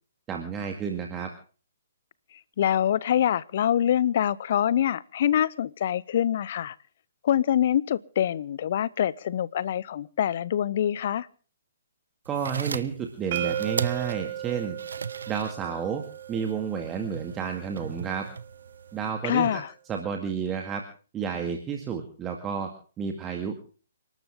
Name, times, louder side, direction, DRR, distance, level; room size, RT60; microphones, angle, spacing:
voice 1, 0.3-1.3 12.3-14.8 15.3-16.0 16.3-18.2 18.9-19.6 19.9-20.8 21.1-22.7 23.0-23.5, right 7 dB, 20° right, 2.0 m, -31 dB
voice 2, 2.6-6.8 7.2-11.3 19.2-19.7, left 10 dB, 50° left, 0.7 m, -25 dB
sound 1, 12.3-19.1, right 5 dB, 70° right, 0.8 m, -38 dB
sound 2, 13.3-19.1, right 11 dB, 40° right, 1.6 m, -36 dB
29.0 x 12.5 x 3.7 m
figure-of-eight pair, 130°, 0 cm